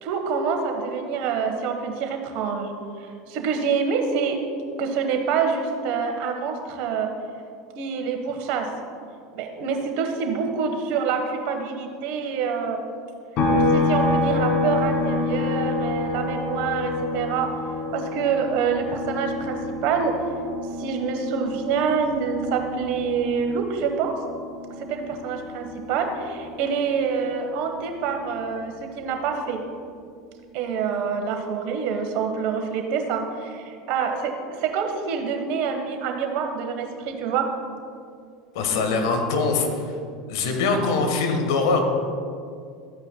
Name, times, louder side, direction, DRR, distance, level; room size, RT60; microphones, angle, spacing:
voice 1, 0.0-2.7 3.0-4.4 4.8-7.1 7.8-8.7 9.3-12.8 13.5-17.5 17.9-20.1 20.8-24.1 24.8-29.6 30.5-37.5, right 6 dB, 55° right, 4 dB, 1.3 m, -26 dB
sound 1, 13.4-26.9 27.2-29.5, left 2 dB, 50° left, 1.6 m, -28 dB
voice 2, 38.5-39.9 40.3-41.8, left 4 dB, 65° left, 4 dB, 1.3 m, -23 dB
13.5 x 8.8 x 2.3 m, 2.3 s
hypercardioid pair, 80°, 3 cm